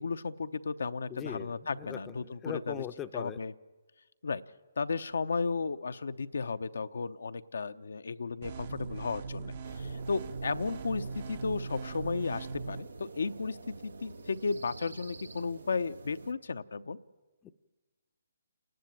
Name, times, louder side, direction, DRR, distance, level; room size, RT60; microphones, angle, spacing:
voice 1, 0.0-2.9 3.1-3.5 4.2-4.4 4.8-17.0, left 4 dB, 75° left, 10 dB, 0.7 m, -34 dB
voice 2, 1.1-1.5 1.8-3.4 17.4-17.5, left 9 dB, 15° left, 9 dB, 0.6 m, -40 dB
sound 1, 8.4-12.8, right 4 dB, 45° right, 0.9 m, -40 dB
sound 2, 9.6-16.3, right 3 dB, 80° right, 1.1 m, -48 dB
28.5 x 10.5 x 9.2 m, 1.3 s
hypercardioid pair, 145°, 0 cm